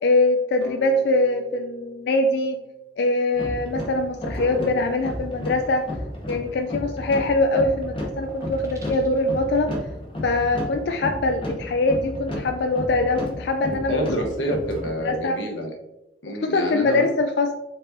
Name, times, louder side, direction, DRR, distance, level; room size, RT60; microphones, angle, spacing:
voice 1, 0.0-2.6 3.0-5.8 6.3-9.7 10.2-14.1 15.0-15.4 16.4-17.5, left 2 dB, 60° left, 5 dB, 0.3 m, -23 dB
sound 1, 0.6-3.4, right 1 dB, 65° right, 0.8 m, -44 dB
sound 2, 3.3-15.2, left 1 dB, 25° left, 0.8 m, -33 dB
sound 3, 4.4-6.3 7.0-7.2 7.7-9.4, equal, 15° right, 0.6 m, -41 dB
voice 2, 13.9-15.7 16.2-17.1, equal, 75° left, 1 dB, 1.0 m, -27 dB
4.7 x 3.9 x 2.6 m, 0.91 s
head